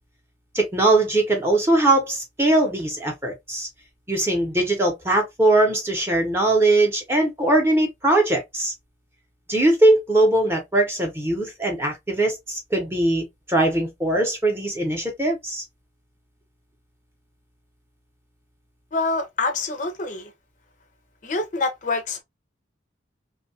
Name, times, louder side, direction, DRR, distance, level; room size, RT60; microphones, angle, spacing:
voice 1, 0.5-3.7 4.1-8.7 9.5-15.6, right 2 dB, 15° right, 0.7 m, -21 dB
voice 2, 18.9-20.3 21.2-22.2, left 3 dB, 40° left, 0.5 m, -26 dB
2.6 x 2.2 x 2.6 m
head